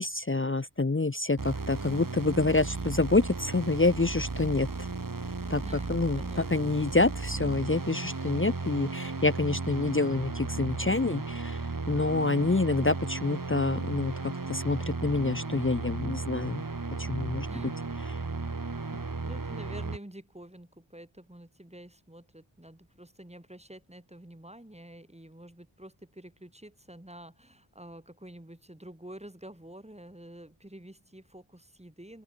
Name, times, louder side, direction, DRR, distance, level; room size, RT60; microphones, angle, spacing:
voice 1, 0.0-4.7 5.5-5.6 5.9-14.1 14.5-16.6 17.0-17.5 18.1-18.2, left 3 dB, 25° left, 0.9 m, -27 dB
sound 1, 1.4-20.0, right 3 dB, 45° right, 2.1 m, -35 dB
voice 2, 5.6-6.7 17.5-17.9 18.9-32.2, right 1 dB, 15° right, 4.1 m, -48 dB
open air
wide cardioid pair, 55°, 47 cm